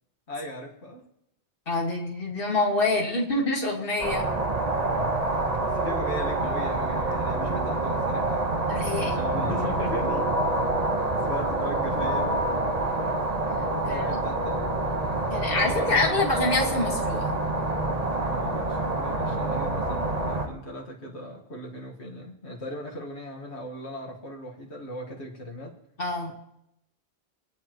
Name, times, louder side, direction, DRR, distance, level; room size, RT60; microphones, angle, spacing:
voice 1, 0.3-1.0 5.6-8.5 8.8-10.3 11.2-12.3 13.6-14.8 15.5-16.2 18.2-25.7, left 1 dB, 85° left, -1 dB, 2.1 m, -37 dB
voice 2, 1.7-4.2 8.7-9.2 13.9-14.2 15.3-17.4 26.0-26.3, left 2 dB, 55° left, -2 dB, 2.4 m, -26 dB
sound 1, 4.0-20.5, right 2 dB, 40° right, 1.4 m, -27 dB
26.0 x 9.5 x 3.1 m, 0.83 s
omnidirectional pair, 1.1 m